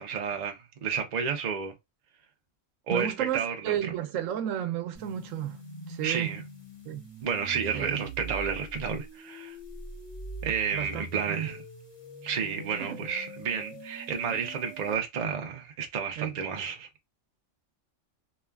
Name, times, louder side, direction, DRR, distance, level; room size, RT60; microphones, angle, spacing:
voice 1, 0.0-1.7 2.9-3.8 6.0-6.4 7.2-9.6 10.4-11.6 12.2-16.9, right 6 dB, 45° right, 0.6 m, -31 dB
voice 2, 2.9-5.6 5.9-6.3 6.8-7.0 7.7-8.1 10.7-11.5 12.8-13.0 16.2-16.4, right 11 dB, 90° right, 0.9 m, -32 dB
sound 1, 4.9-14.9, right 1 dB, 30° left, 1.5 m, -43 dB
3.0 x 2.3 x 2.2 m
omnidirectional pair, 1.3 m